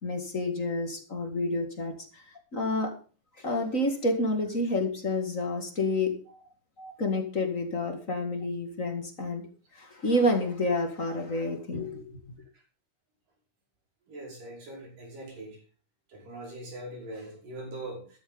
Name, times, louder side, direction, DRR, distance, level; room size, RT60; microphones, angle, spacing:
voice 1, 0.0-1.9 2.5-2.9 3.4-6.1 6.8-9.5 9.8-12.2, left 1 dB, 30° left, 4 dB, 1.9 m, -29 dB
voice 2, 14.1-15.6 16.1-18.2, right 1 dB, 70° right, -1 dB, 7.1 m, -42 dB
13.5 x 12.5 x 3.9 m, 0.38 s
omnidirectional pair, 3.9 m